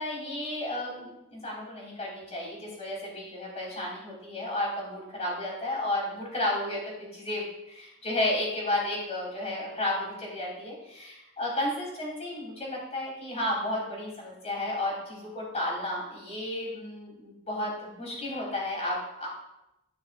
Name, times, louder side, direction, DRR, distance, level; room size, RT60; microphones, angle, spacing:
voice 1, 0.0-19.3, left 1 dB, 30° left, -3 dB, 3.2 m, -32 dB
14.0 x 5.9 x 2.5 m, 0.90 s
head